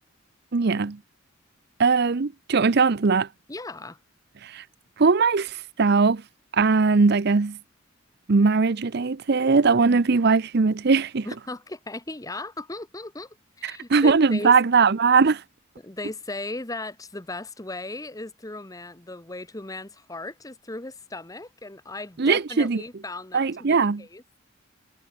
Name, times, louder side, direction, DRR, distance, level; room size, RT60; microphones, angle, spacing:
voice 1, 0.5-1.0 1.8-3.3 4.4-4.6 5.0-6.2 6.5-7.6 8.3-11.3 13.6-15.4 22.2-22.8 23.3-24.0, right 4 dB, 55° right, 0.6 m, -20 dB
voice 2, 3.5-4.0 11.2-14.5 15.8-24.4, left 2 dB, 15° left, 1.1 m, -37 dB
head